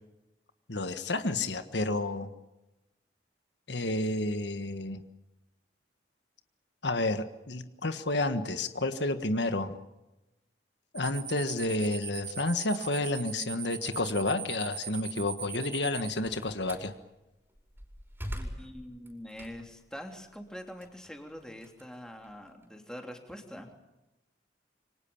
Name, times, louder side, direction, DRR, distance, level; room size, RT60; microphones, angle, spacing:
voice 1, 0.7-2.3 3.7-5.0 6.8-9.8 10.9-16.9, left 2 dB, 70° left, 9 dB, 1.5 m, -30 dB
sound 1, 11.0-16.1, right 9 dB, 35° right, 2.9 m, -39 dB
Slam, 15.8-16.9 17.5-19.8 20.3-22.6, equal, 10° right, 5.3 m, -43 dB
voice 2, 18.3-23.7, equal, 5° left, 3 dB, 3.3 m, -44 dB
27.5 x 25.0 x 7.2 m, 0.99 s
head